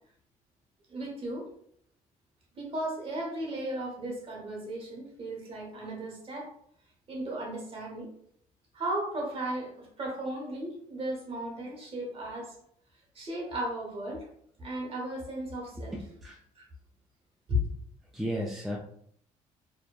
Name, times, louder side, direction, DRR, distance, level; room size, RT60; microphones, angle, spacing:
voice 1, 0.9-1.5 2.6-6.5 7.1-8.1 8.7-12.5 13.1-14.3 14.6-16.0 16.6-16.7 17.5-17.6, equal, 40° right, -2 dB, 1.0 m, -35 dB
voice 2, 15.9-16.4 18.1-18.8, equal, ahead, -2 dB, 0.4 m, -34 dB
2.7 x 2.1 x 2.2 m, 0.66 s
cardioid pair, 95°, 14 cm